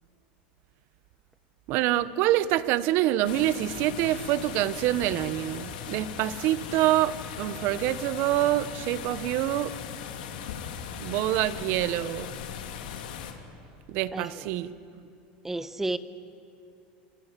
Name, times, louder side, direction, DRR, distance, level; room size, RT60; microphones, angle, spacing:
voice 1, 1.7-9.7 11.0-12.3 13.9-14.7, right 14 dB, 55° right, 15 dB, 1.0 m, -26 dB
sound 1, 3.2-13.3, left 8 dB, 90° left, 2.8 m, -38 dB
voice 2, 14.1-14.5 15.4-16.0, right 2 dB, 5° right, 13 dB, 0.9 m, -32 dB
26.5 x 24.5 x 7.5 m, 2.6 s
supercardioid pair, 135°, 5 cm